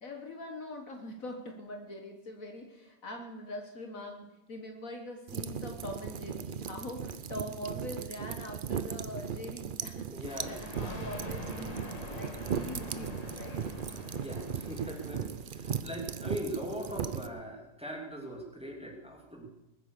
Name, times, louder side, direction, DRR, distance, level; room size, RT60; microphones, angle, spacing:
voice 1, 0.0-11.8 12.1-13.6, left 1 dB, 55° left, 3 dB, 1.8 m, -43 dB
sound 1, 5.3-17.3, right 7 dB, 90° right, 0.4 m, -38 dB
voice 2, 10.1-10.7 14.2-19.5, equal, 5° right, 0 dB, 2.6 m, -40 dB
Thunder, 10.2-15.6, left 1 dB, 25° left, 1.5 m, -44 dB
20.5 x 9.6 x 6.7 m, 0.97 s
omnidirectional pair, 1.8 m